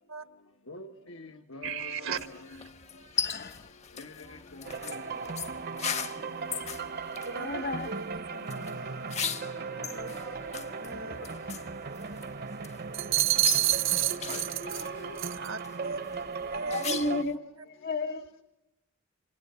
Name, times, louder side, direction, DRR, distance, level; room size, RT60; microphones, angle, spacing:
voice 1, 0.7-2.3 4.0-5.0 7.3-7.4 8.3-8.4 13.0-13.1 14.3-15.4, left 2 dB, 85° left, 1.5 m, -46 dB
voice 2, 1.6-2.3 2.9-3.0 4.7-5.4 7.2-9.1 9.4-10.4 10.8-11.2 11.9-12.1 15.3-16.0 16.5-17.0, right 5 dB, 85° right, 1.7 m, -39 dB
sound 1, 2.1-17.3, left 7 dB, 35° left, 0.9 m, -39 dB
voice 3, 3.1-3.7 7.3-7.9 8.6-8.8 9.8-10.1 10.8-11.2 16.5-18.3, left 2 dB, 50° left, 1.3 m, -35 dB
sound 2, 4.6-17.2, right 4 dB, 55° right, 0.9 m, -38 dB
sound 3, 12.9-14.9 15.2-15.5, right 14 dB, 70° right, 0.9 m, -26 dB
29.5 x 26.5 x 6.9 m
head